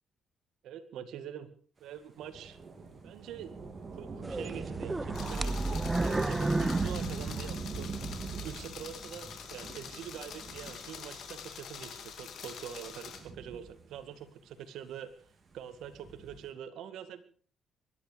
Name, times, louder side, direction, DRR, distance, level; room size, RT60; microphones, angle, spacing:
voice 1, 0.6-1.5 1.8-2.6 3.0-3.5 4.0-7.9 8.4-15.1 15.5-17.2, right 9 dB, 80° right, 10 dB, 2.1 m, -44 dB
Thunder / Rain, 2.2-11.2 11.9-12.0 12.9-14.2 15.7-16.5, right 4 dB, 40° right, 3.9 m, -41 dB
sound 1, 4.2-8.0 8.4-8.5 9.2-9.3, right 2 dB, 20° right, 0.7 m, -32 dB
sound 2, 5.1-13.2, left 7 dB, 70° left, 4.0 m, -45 dB
24.0 x 11.5 x 5.2 m, 0.44 s
cardioid pair, 90°, 0 cm